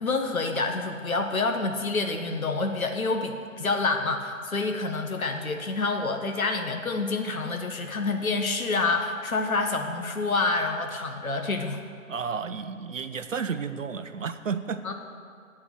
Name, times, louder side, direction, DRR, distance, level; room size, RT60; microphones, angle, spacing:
voice 1, 0.0-11.8 14.8-14.9, left 3 dB, 80° left, 4 dB, 0.9 m, -27 dB
voice 2, 12.1-14.8, right 6 dB, 65° right, 10 dB, 0.7 m, -32 dB
9.7 x 4.3 x 7.3 m, 2.3 s
figure-of-eight pair, 145°, 41 cm